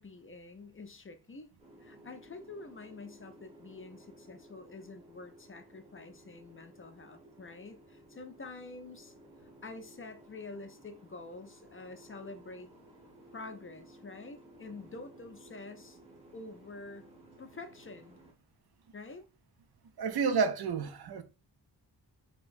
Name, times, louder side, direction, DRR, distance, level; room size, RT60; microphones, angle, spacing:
voice 1, 0.0-1.5 1.8-9.1 9.6-12.7 13.3-16.0 16.3-17.1 17.4-18.2 18.9-19.3, left 3 dB, 30° left, 0.5 m, -47 dB
Boat Water vehicle, 1.6-18.3, right 1 dB, 15° right, 1.2 m, -57 dB
voice 2, 20.0-21.2, right 5 dB, 60° right, 0.5 m, -30 dB
3.9 x 2.8 x 2.5 m
wide cardioid pair, 85°, 42 cm